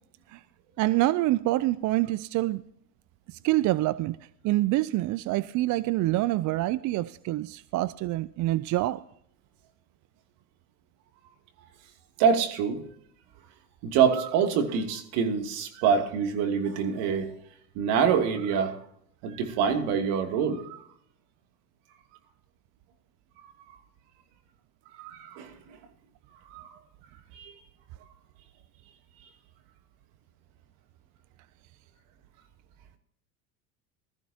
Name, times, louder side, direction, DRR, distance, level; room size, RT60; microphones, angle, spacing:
voice 1, 0.8-2.6 3.3-4.2 4.4-9.0, right 17 dB, 45° right, 0.5 m, -26 dB
voice 2, 12.2-12.8 13.8-17.3 17.7-18.8 19.2-20.8 25.0-25.6 26.5-26.8 27.3-27.6, right 6 dB, 65° right, 2.7 m, -26 dB
20.5 x 14.0 x 2.8 m
hypercardioid pair, 90°, 45 cm